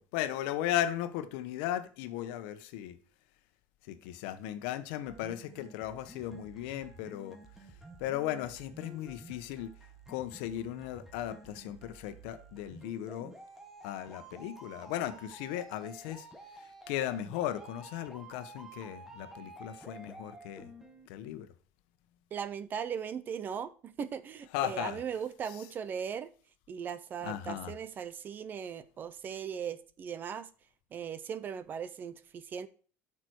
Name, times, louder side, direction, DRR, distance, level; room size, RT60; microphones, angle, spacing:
voice 1, 0.1-3.0 3.9-7.4 8.0-9.7 10.1-13.3 13.8-16.3 16.9-20.7 21.1-21.5 24.5-25.0 27.2-27.7, left 12 dB, 80° left, 1.1 m, -36 dB
sound 1, 5.1-21.1, right 2 dB, 5° right, 1.7 m, -51 dB
voice 2, 22.3-26.3 26.7-30.5 30.9-32.7, right 7 dB, 30° right, 0.7 m, -38 dB
12.5 x 6.0 x 4.7 m
cardioid pair, 155°, 6 cm